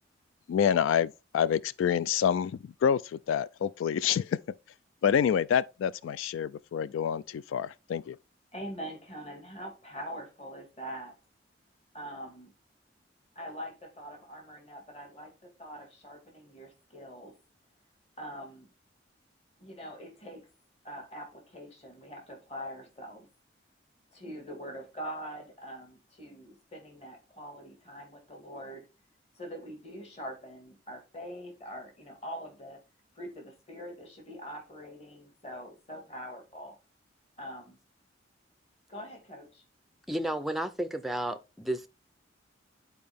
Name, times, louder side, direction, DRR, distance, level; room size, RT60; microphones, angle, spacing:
voice 1, 0.5-4.4 5.0-8.2, left 8 dB, 90° left, 0.3 m, -27 dB
voice 2, 8.5-11.2 11.9-12.5 13.4-17.3 18.2-18.7 19.6-20.4 20.8-23.3 24.1-28.8 29.4-32.8 33.2-36.8 37.4-37.8 38.9-39.6, equal, 35° left, 1.9 m, -43 dB
voice 3, 40.1-41.9, right 1 dB, ahead, 0.4 m, -32 dB
10.5 x 4.4 x 3.5 m
head